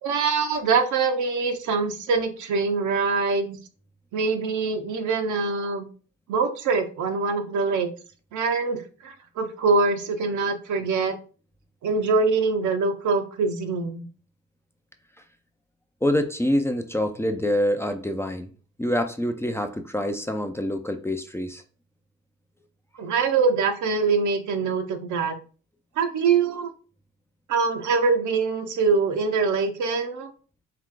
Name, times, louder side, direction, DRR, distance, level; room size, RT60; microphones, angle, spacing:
voice 1, 0.0-3.6 4.1-5.9 6.3-7.9 8.3-11.2 11.8-14.1 23.0-25.4 26.0-26.7 27.5-30.3, right 4 dB, 75° right, 0.9 m, -24 dB
voice 2, 16.0-18.5 18.8-21.6, left 1 dB, 10° left, 0.4 m, -26 dB
4.6 x 2.4 x 3.7 m
cardioid pair, 90°, 30 cm